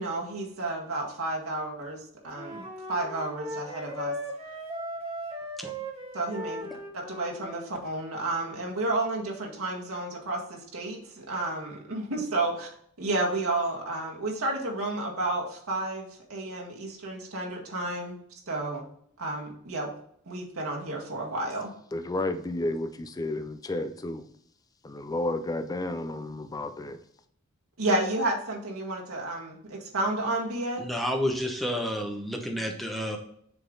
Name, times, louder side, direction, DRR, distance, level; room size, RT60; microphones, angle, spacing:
voice 1, 0.0-4.1 6.1-6.7 6.9-12.7 13.0-18.2 18.5-18.8 19.2-19.9 20.3-21.7 27.8-30.8, right 2 dB, 90° right, -1 dB, 1.8 m, -31 dB
Wind instrument woodwind instrument, 2.3-7.7, equal, 30° right, 1.4 m, -38 dB
voice 2, 21.9-24.2 24.8-27.0, left 2 dB, 20° left, 9 dB, 0.4 m, -32 dB
voice 3, 30.8-33.2, equal, ahead, 2 dB, 0.9 m, -30 dB
6.9 x 3.8 x 3.9 m, 0.67 s
head